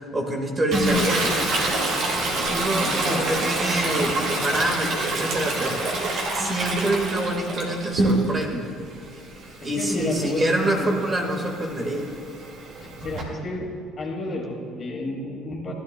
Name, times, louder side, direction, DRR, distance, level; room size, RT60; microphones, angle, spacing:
voice 1, 0.1-1.4 1.6-1.7 2.5-6.0 6.3-8.7 9.6-12.1, right 1 dB, 30° right, 2 dB, 1.8 m, -26 dB
Toilet flush, 0.7-8.5 8.9-13.2, right 2 dB, 60° right, 2.2 m, -27 dB
voice 2, 2.8-3.2 9.6-10.5 10.8-10.9 12.8-13.7 14.0-15.7, left 2 dB, 40° left, -1 dB, 2.3 m, -31 dB
15.5 x 12.0 x 2.3 m, 2.1 s
hypercardioid pair, 60°, 0 cm